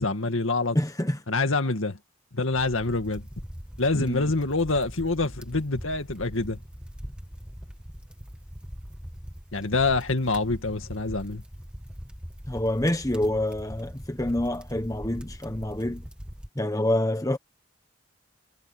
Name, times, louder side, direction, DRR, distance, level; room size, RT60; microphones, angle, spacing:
voice 1, 0.0-0.8 1.3-2.0 2.3-3.2 3.8-6.6 9.5-11.4, left 3 dB, 75° left, 2.1 m, -26 dB
voice 2, 0.7-1.2 4.1-4.3 12.5-16.0 16.5-17.4, left 1 dB, 15° left, 1.3 m, -27 dB
sound 1, 2.5-16.5, equal, 5° right, 1.8 m, -41 dB
head